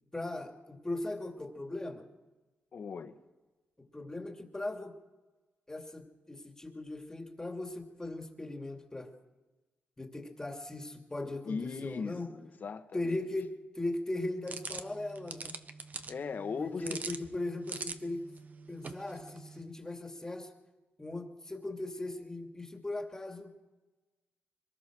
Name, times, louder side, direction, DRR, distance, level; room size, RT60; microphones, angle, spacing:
voice 1, 0.1-2.0 3.9-5.0 5.7-9.1 10.0-12.3 12.9-15.5 16.6-18.2 18.7-20.5 21.0-23.5, left 2 dB, 15° left, 2.5 m, -38 dB
voice 2, 2.7-3.2 11.4-13.2 16.1-17.0, left 5 dB, 55° left, 1.6 m, -38 dB
sound 1, 14.5-19.6, right 4 dB, 45° right, 1.3 m, -44 dB
24.0 x 19.5 x 6.3 m
cardioid pair, 90°, 4 cm